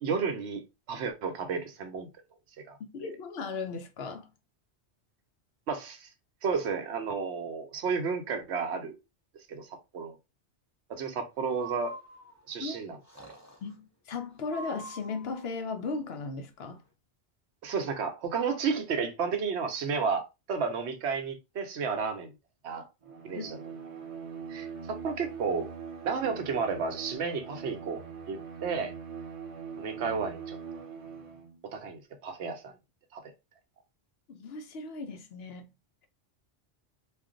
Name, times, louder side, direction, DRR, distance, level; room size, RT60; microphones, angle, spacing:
voice 1, 0.0-2.1 2.7-2.8 5.7-6.1 6.4-9.0 9.5-10.2 10.9-12.0 12.5-13.3 17.6-22.3 22.6-22.9 23.2-23.6 24.5-25.7 26.0-28.9 29.8-30.6 31.7-32.7 33.1-33.2, right 5 dB, 75° right, 0.9 m, -32 dB
voice 2, 2.9-4.3 12.6-12.8 13.6-16.8 23.3-23.5 34.3-35.7, left 4 dB, 65° left, 0.8 m, -37 dB
Breathing, 11.5-12.6 13.0-13.7 14.4-15.5, right 3 dB, 20° left, 0.5 m, -45 dB
Bowed string instrument, 23.0-31.6, right 6 dB, 50° right, 0.4 m, -42 dB
2.4 x 2.2 x 3.7 m
omnidirectional pair, 1.2 m